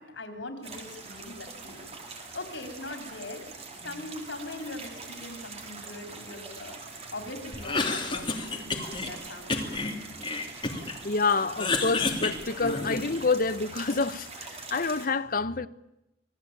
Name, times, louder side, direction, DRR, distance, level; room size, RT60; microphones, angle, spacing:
voice 1, 0.0-1.3 1.6-3.5 3.8-6.8 7.1-9.7, left 2 dB, 80° left, 4.5 m, -41 dB
sound 1, 0.6-15.1, right 4 dB, 35° right, 4.2 m, -44 dB
Cough, 7.5-9.1 9.5-11.0 11.3-13.2, left 3 dB, 25° left, 3.0 m, -30 dB
voice 2, 11.0-15.7, left 4 dB, 50° left, 0.9 m, -27 dB
26.5 x 18.5 x 9.2 m
head